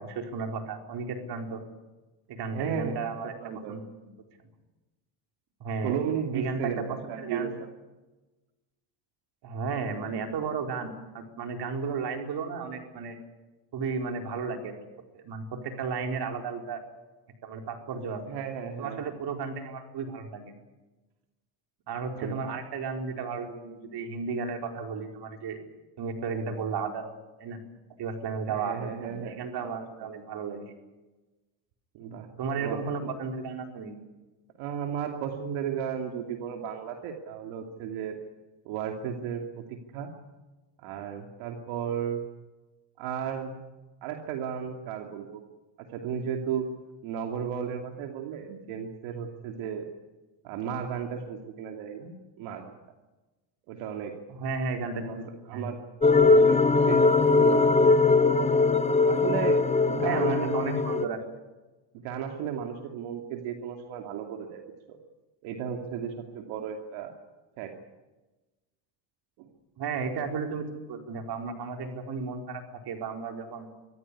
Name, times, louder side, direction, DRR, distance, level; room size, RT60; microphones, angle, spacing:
voice 1, 0.0-1.6 2.3-3.3 3.7-4.1 4.4-4.5 5.6-6.0 6.3-7.5 9.4-13.2 13.7-14.7 15.1-16.8 17.4-18.2 18.8-20.5 21.9-25.6 26.0-27.0 27.4-27.6 28.0-30.6 32.4-34.0 54.3-55.2 55.5-55.7 59.9-61.2 69.8-73.7, right 5 dB, 55° right, 4 dB, 4.6 m, -33 dB
voice 2, 2.5-3.0 3.4-3.8 5.8-7.7 18.3-19.1 22.2-22.4 28.5-30.1 31.9-32.3 32.6-33.1 34.6-38.2 38.6-39.6 39.9-40.1 40.8-42.2 43.0-43.5 44.0-45.4 45.9-46.7 47.0-49.9 50.4-52.8 53.7-54.1 54.9-55.8 56.1-57.7 59.1-59.6 59.9-60.6 62.0-64.6 64.9-65.0 65.4-67.2 67.6-67.7 69.4-69.5, right 8 dB, 80° right, 3 dB, 2.8 m, -34 dB
sound 1, 56.0-61.0, left 3 dB, 15° left, 0.9 m, -21 dB
25.0 x 14.5 x 9.8 m, 1.1 s
cardioid pair, 110°, 47 cm